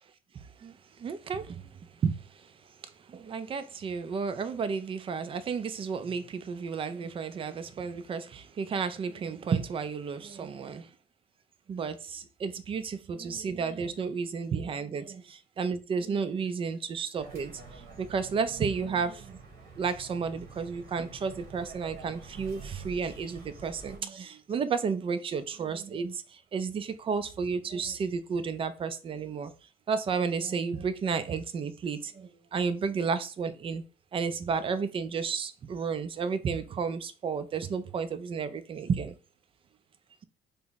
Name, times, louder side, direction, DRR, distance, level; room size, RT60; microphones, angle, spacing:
voice 1, 0.3-2.5 2.8-10.9 11.7-19.4 19.8-29.5 29.9-33.8 34.1-39.2, right 5 dB, 30° right, 0.4 m, -32 dB
sound 1, 17.1-24.0, right 4 dB, 70° right, 1.1 m, -47 dB
3.4 x 2.0 x 4.0 m
cardioid pair, 110°, 17 cm